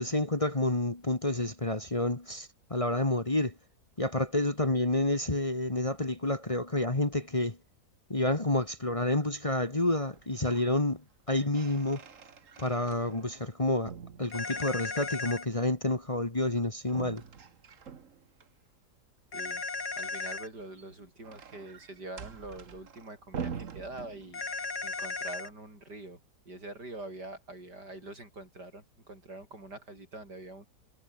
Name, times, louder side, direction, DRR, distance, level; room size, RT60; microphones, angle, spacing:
voice 1, 0.0-3.5 4.0-7.6 8.1-12.0 12.6-13.9 14.2-17.2, left 2 dB, 20° left, 1.8 m, -29 dB
sound 1, 10.1-10.7 11.1-13.5 13.9-15.1 16.9-18.5 20.5-24.7, right 6 dB, 50° right, 1.7 m, -45 dB
sound 2, 14.3-15.5 19.3-20.5 24.3-25.5, left 4 dB, 70° left, 4.0 m, -36 dB
voice 2, 19.3-19.7 19.9-24.4 24.8-26.2 26.4-30.7, right 2 dB, 80° right, 8.5 m, -44 dB
omnidirectional pair, 1.8 m